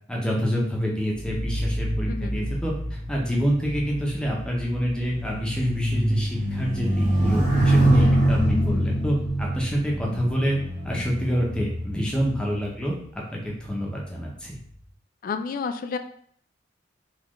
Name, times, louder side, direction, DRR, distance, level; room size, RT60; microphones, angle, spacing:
voice 1, 0.1-2.7 3.1-10.6 10.8-14.6, equal, 5° left, -3 dB, 0.7 m, -27 dB
sound 1, 1.1-12.7 13.5-13.8, right 1 dB, 40° right, 0.9 m, -25 dB
voice 2, 2.1-2.5 7.9-8.1 15.2-16.0, left 5 dB, 50° left, 8 dB, 0.3 m, -31 dB
4.0 x 2.4 x 3.0 m, 0.62 s
head